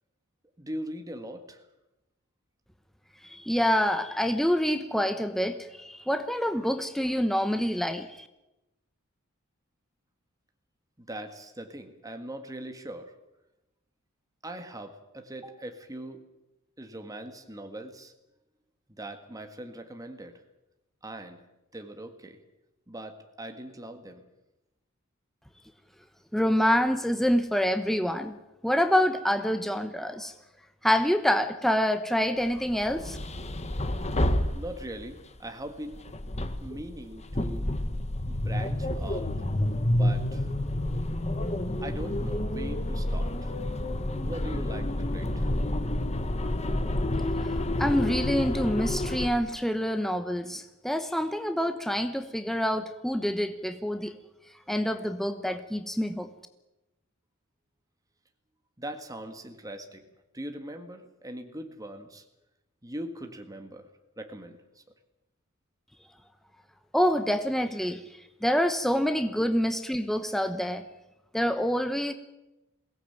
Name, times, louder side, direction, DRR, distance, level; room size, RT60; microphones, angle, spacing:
voice 1, 0.6-1.6 11.0-13.1 14.4-16.2 16.8-18.1 18.9-20.4 21.0-21.4 21.7-22.4 22.9-24.2 34.5-36.0 36.6-37.7 38.3-39.3 39.9-40.5 41.8-43.5 44.1-45.5 58.8-60.0 60.3-62.2 62.8-63.9 64.2-64.8, right 1 dB, 15° right, 5 dB, 1.7 m, -41 dB
voice 2, 3.2-8.3 26.3-28.4 28.6-30.3 30.8-33.2 47.8-54.1 54.7-56.3 66.9-68.0 68.4-70.9 71.3-72.1, equal, ahead, 8 dB, 0.9 m, -26 dB
sound 1, 32.6-35.2 35.9-49.3, left 1 dB, 30° left, 1.4 m, -29 dB
22.0 x 17.5 x 9.1 m, 0.96 s
head